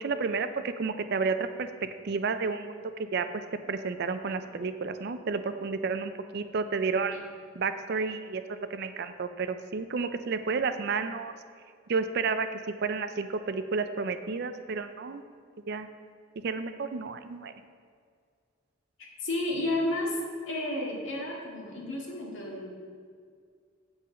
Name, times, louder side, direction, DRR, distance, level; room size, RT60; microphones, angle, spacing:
voice 1, 0.0-1.7 2.0-3.3 3.7-7.2 7.6-11.4 11.9-12.5 12.8-15.2 15.7-15.9 16.4-17.5, right 4 dB, 50° right, 10 dB, 0.4 m, -31 dB
voice 2, 19.0-20.2 20.5-22.7, left 1 dB, 65° left, -2 dB, 2.0 m, -32 dB
7.9 x 7.5 x 5.1 m, 2.1 s
head